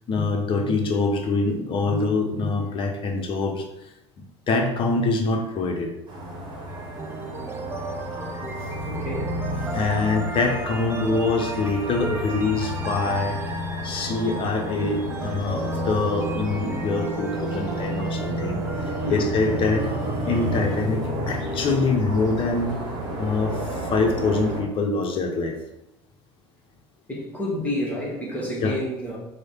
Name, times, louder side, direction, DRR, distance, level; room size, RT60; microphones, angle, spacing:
voice 1, 0.1-3.7 4.5-5.9 9.7-13.4 13.8-18.6 19.1-19.9 20.2-22.7 23.2-25.6 28.6-28.7, left 3 dB, 35° left, 3 dB, 0.7 m, -24 dB
sound 1, 6.1-24.6, equal, 35° right, 1.3 m, -31 dB
sound 2, 6.7-20.6, right 3 dB, 15° right, 0.5 m, -35 dB
voice 2, 8.9-9.4 13.8-14.0 19.0-19.3 27.1-29.2, left 1 dB, 10° left, -3 dB, 1.3 m, -29 dB
3.2 x 2.1 x 4.3 m, 0.91 s
figure-of-eight pair, 70°, 14 cm